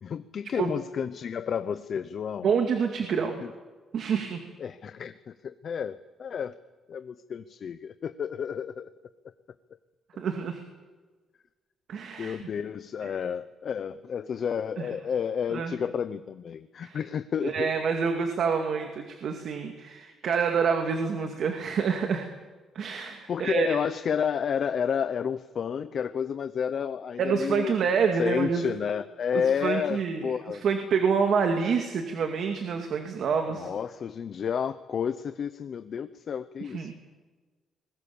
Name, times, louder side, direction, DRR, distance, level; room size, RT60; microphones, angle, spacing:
voice 1, 0.0-2.5 3.4-3.5 4.6-6.6 6.9-8.9 12.2-17.7 23.3-27.8 28.2-30.6 33.6-36.9, left 7 dB, 45° left, 11 dB, 0.7 m, -31 dB
voice 2, 2.4-3.4 3.9-4.4 10.2-10.6 11.9-12.4 14.8-14.9 15.5-15.7 16.8-17.0 17.4-22.3 22.7-23.7 27.2-28.7 29.6-33.7 36.7-36.9, right 6 dB, 55° right, 5 dB, 2.1 m, -27 dB
27.5 x 21.5 x 7.1 m, 1.3 s
cardioid pair, 165°, 0 cm